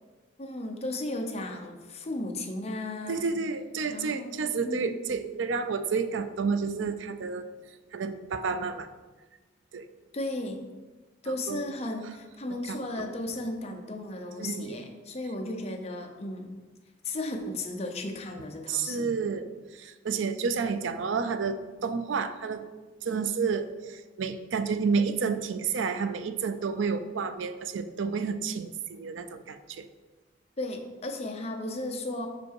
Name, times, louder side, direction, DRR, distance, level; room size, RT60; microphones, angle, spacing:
voice 1, 0.4-3.3 3.9-4.3 4.6-4.9 10.1-10.6 11.2-16.5 17.0-19.1 30.6-32.3, left 2 dB, 35° left, 4 dB, 0.7 m, -35 dB
voice 2, 3.1-7.5 7.9-8.9 9.7-9.9 11.3-11.7 12.7-13.1 14.4-14.8 18.7-19.5 19.7-22.6 23.0-29.9, right 5 dB, 80° right, 10 dB, 0.5 m, -30 dB
5.5 x 5.1 x 4.6 m, 1.3 s
head